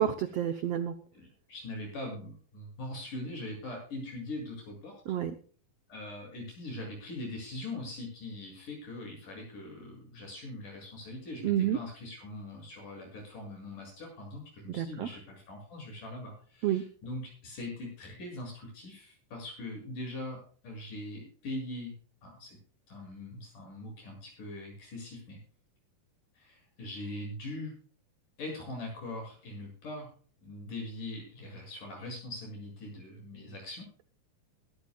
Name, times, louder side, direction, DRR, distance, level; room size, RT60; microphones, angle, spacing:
voice 1, 0.0-0.9 5.1-5.3 11.4-11.8 14.7-15.1 16.6-16.8, right 11 dB, 80° right, 9 dB, 1.4 m, -29 dB
voice 2, 1.1-5.0 5.9-21.9 22.2-22.6 22.9-25.4 26.4-27.7 28.4-30.1 30.4-33.9, left 1 dB, 60° left, 0 dB, 9.1 m, -42 dB
21.5 x 13.0 x 2.4 m, 0.43 s
omnidirectional pair, 4.1 m